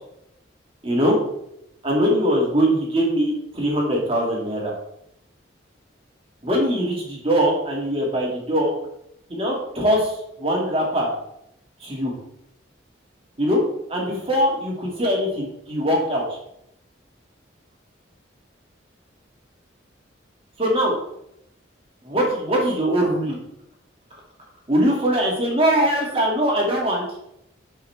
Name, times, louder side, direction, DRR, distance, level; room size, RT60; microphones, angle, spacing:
voice 1, 0.8-1.2 1.8-4.7 6.4-8.8 9.3-11.1 11.8-12.1 13.4-13.6 13.9-16.4 20.6-20.9 22.0-23.4 24.7-27.0, equal, 30° right, -3 dB, 2.6 m, -21 dB
11.0 x 5.7 x 3.6 m, 0.77 s
head